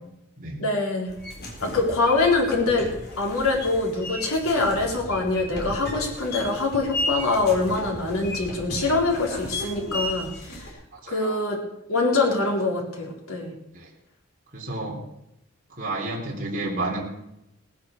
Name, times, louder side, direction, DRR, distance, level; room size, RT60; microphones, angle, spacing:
voice 1, 0.6-1.1 1.6-2.9 3.2-10.7 11.1-11.6 11.9-13.5, left 3 dB, 85° left, 0 dB, 4.0 m, -24 dB
sound 1, 1.1-10.7, left 1 dB, 50° left, 4.2 m, -34 dB
voice 2, 11.0-11.4 13.7-13.9 14.5-15.0 15.7-17.0, right 2 dB, 40° right, -3 dB, 3.4 m, -31 dB
18.0 x 10.5 x 6.7 m, 0.86 s
head